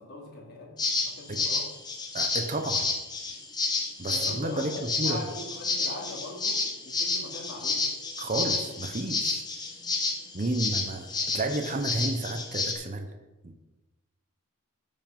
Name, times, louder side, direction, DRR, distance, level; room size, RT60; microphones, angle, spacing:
voice 1, 0.0-1.9 4.1-7.9, left 1 dB, 50° left, -3 dB, 3.2 m, -41 dB
sound 1, 0.8-12.7, left 3 dB, 20° left, 1.3 m, -30 dB
voice 2, 2.1-2.9 4.0-5.2 8.2-9.4 10.3-11.1 11.3-13.1 13.4-13.6, right 2 dB, 35° right, 6 dB, 0.8 m, -31 dB
14.0 x 5.4 x 5.3 m, 1.1 s
head